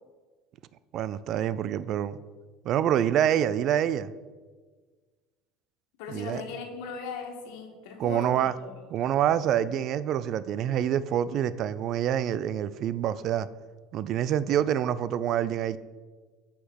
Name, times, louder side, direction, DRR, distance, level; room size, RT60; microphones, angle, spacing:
voice 1, 0.9-2.2 2.6-4.1 6.1-6.4 8.0-8.5 8.9-13.5 13.9-15.8, right 10 dB, 45° right, 16 dB, 0.4 m, -26 dB
voice 2, 6.0-8.7 9.0-9.1, left 5 dB, 75° left, 3 dB, 1.8 m, -39 dB
8.2 x 5.9 x 6.4 m, 1.4 s
cardioid pair, 140°, 0 cm